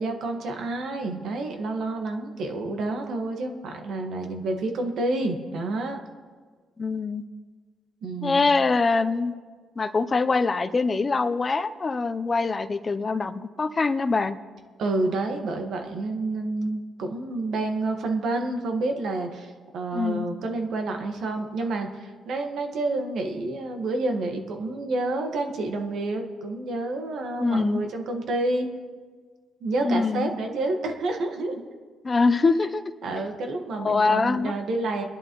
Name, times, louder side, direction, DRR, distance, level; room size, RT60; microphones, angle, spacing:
voice 1, 0.0-6.0 8.0-8.5 14.8-28.7 29.6-31.6 33.0-35.1, right 2 dB, 70° right, 4 dB, 1.5 m, -29 dB
voice 2, 6.8-7.2 8.2-9.3 9.8-14.4 19.9-20.3 27.4-27.8 29.8-30.3 32.0-32.8 33.8-34.5, left 4 dB, 30° left, 11 dB, 0.6 m, -23 dB
23.5 x 11.0 x 3.1 m, 1.5 s
cardioid pair, 90°, 0 cm